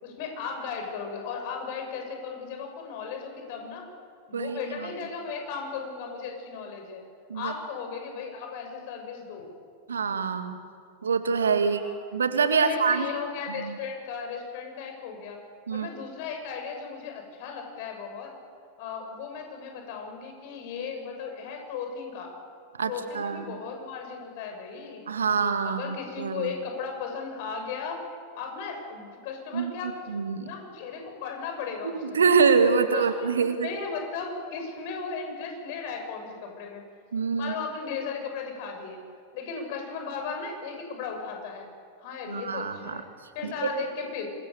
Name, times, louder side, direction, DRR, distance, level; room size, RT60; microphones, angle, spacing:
voice 1, 0.0-3.9 4.3-7.0 7.3-9.5 11.7-11.9 12.5-15.4 15.7-18.4 18.8-22.3 22.8-25.0 25.6-28.0 28.3-32.3 32.9-36.8 37.4-39.0 39.3-41.7 42.0-43.1 43.3-44.3, left 5 dB, 50° left, 3 dB, 6.7 m, -36 dB
voice 2, 9.9-10.6 11.0-11.8 12.1-13.1 13.6-13.7 15.7-15.9 22.8-23.4 25.1-26.5 29.5-30.5 31.8-33.7 37.1-37.5 42.3-43.0 43.4-43.7, right 5 dB, 70° right, 8 dB, 2.0 m, -25 dB
26.5 x 23.5 x 7.1 m, 2.1 s
figure-of-eight pair, 90°, 0 cm